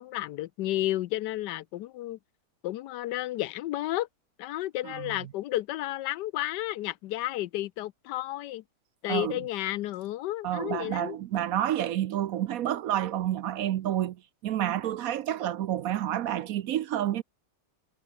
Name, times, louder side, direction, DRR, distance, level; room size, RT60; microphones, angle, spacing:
voice 1, 0.0-2.2 2.6-4.1 4.4-8.6 9.0-11.2, left 15 dB, 85° left, 1.2 m, -32 dB
voice 2, 4.8-5.3 9.1-9.4 10.4-17.2, right 12 dB, 65° right, 1.0 m, -29 dB
omnidirectional pair, 1.8 m